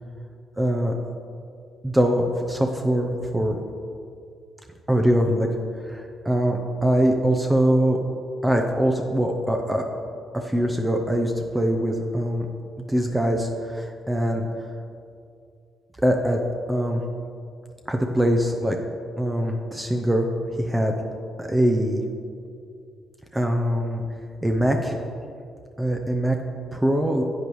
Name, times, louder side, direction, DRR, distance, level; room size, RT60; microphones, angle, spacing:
voice 1, 0.6-0.9 1.8-3.6 4.9-5.5 5.9-8.0 8.4-9.8 10.3-12.5 12.9-14.5 16.0-16.4 16.7-17.0 17.9-18.8 19.2-20.3 20.5-20.9 21.4-22.0 23.3-24.0 24.4-25.0 25.8-26.4 26.7-27.2, right 1 dB, 10° right, 3 dB, 0.7 m, -22 dB
10.0 x 8.4 x 3.1 m, 2.4 s
cardioid pair, 90°, 0 cm